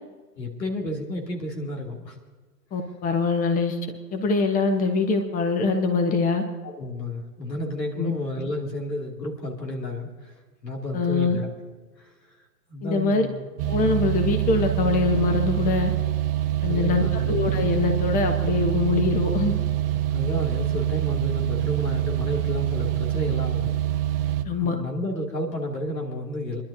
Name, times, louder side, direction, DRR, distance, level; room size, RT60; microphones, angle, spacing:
voice 1, 0.4-2.2 6.8-10.3 10.6-11.5 12.0-12.1 12.7-13.4 16.6-17.4 20.1-23.7 24.6-26.6, left 1 dB, 85° left, 0 dB, 2.8 m, -31 dB
voice 2, 2.7-3.8 4.1-6.4 8.0-8.1 10.9-11.4 12.8-13.3 13.7-15.9 16.6-19.6 24.4-24.8, left 3 dB, 15° left, 5 dB, 1.1 m, -23 dB
sound 1, 13.6-24.4, right 12 dB, 35° right, 0.6 m, -25 dB
27.5 x 11.5 x 2.8 m, 1.4 s
hypercardioid pair, 115°, 49 cm